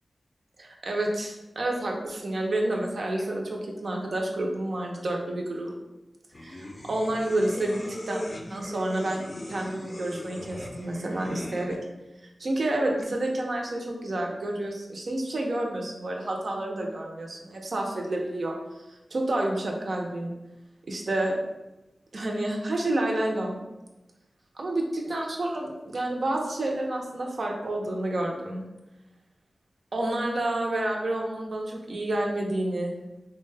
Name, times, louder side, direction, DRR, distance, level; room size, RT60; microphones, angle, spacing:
voice 1, 0.6-5.8 6.4-7.8 8.1-8.2 8.5-11.8 12.4-20.3 20.9-21.4 22.1-23.6 24.5-28.7 29.9-33.0, right 1 dB, 60° right, 0 dB, 0.6 m, -29 dB
sound 1, 6.3-11.8, left 1 dB, 35° left, 0.5 m, -39 dB
4.0 x 2.2 x 3.3 m, 1.0 s
wide cardioid pair, 115°, 0 cm